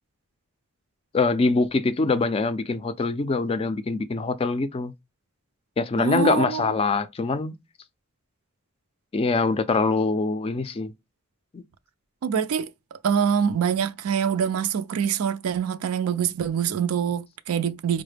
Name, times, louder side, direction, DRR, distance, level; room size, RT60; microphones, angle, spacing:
voice 1, 1.1-4.9 5.8-7.6 9.1-10.9 11.5-11.6, left 3 dB, 25° left, 0.3 m, -24 dB
voice 2, 6.0-6.7 12.2-12.7 13.0-18.0, right 7 dB, 90° right, 0.4 m, -25 dB
4.7 x 2.1 x 3.3 m
head